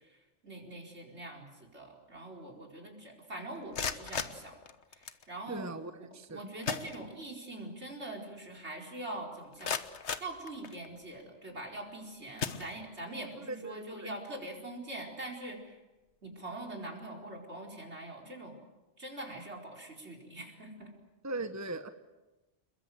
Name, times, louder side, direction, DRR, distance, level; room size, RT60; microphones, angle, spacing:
voice 1, 0.0-4.5 4.9-5.7 6.3-9.8 10.2-15.8 16.2-18.6 19.0-20.9, right 1 dB, 70° right, 1 dB, 4.9 m, -43 dB
sound 1, 3.5-5.3 6.2-6.3 6.6-7.5 7.9-8.0 8.5-8.6 9.2-11.1 11.7-11.9 12.4-13.2, left 6 dB, 75° left, 1.5 m, -38 dB
voice 2, 5.5-6.5 13.4-14.1 21.2-21.9, right 2 dB, 15° right, 9 dB, 1.1 m, -39 dB
28.5 x 22.0 x 7.8 m, 1.1 s
omnidirectional pair, 1.2 m